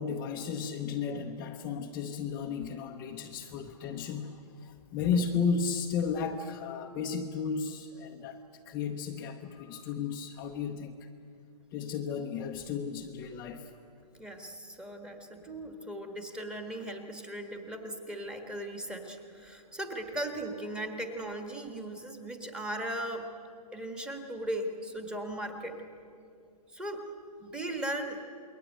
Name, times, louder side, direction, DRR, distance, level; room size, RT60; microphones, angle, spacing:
voice 1, 0.0-10.9 11.7-13.7, left 6 dB, 15° left, -1 dB, 0.8 m, -34 dB
voice 2, 14.1-23.3 23.7-25.8 26.7-27.1 27.4-28.2, right 1 dB, 5° right, 5 dB, 1.5 m, -38 dB
28.0 x 22.0 x 9.3 m, 2.4 s
hypercardioid pair, 165°, 21 cm